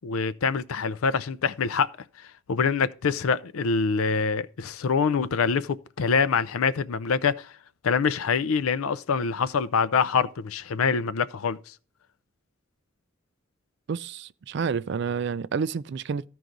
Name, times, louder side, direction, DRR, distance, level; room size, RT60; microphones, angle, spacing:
voice 1, 0.0-1.9 2.5-7.5 7.8-11.7, left 5 dB, 85° left, 0.5 m, -25 dB
voice 2, 13.9-16.2, right 6 dB, 55° right, 0.3 m, -29 dB
14.0 x 4.7 x 3.9 m
head